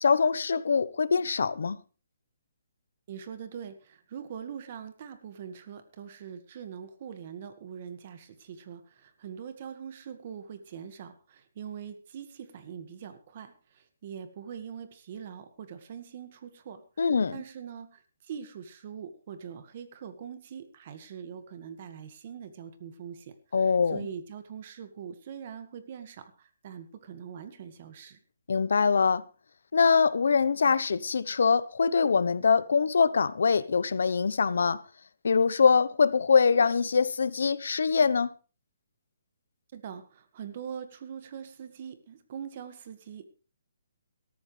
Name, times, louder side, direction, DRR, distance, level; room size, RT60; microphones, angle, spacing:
voice 1, 0.0-1.8 17.0-17.3 23.5-24.0 28.5-29.2 29.7-34.8 35.2-38.3, left 5 dB, 70° left, 0.9 m, -23 dB
voice 2, 3.1-28.2 39.7-43.2, right 8 dB, 35° right, 1.7 m, -43 dB
17.5 x 13.5 x 3.3 m
hypercardioid pair, 170°, 0 cm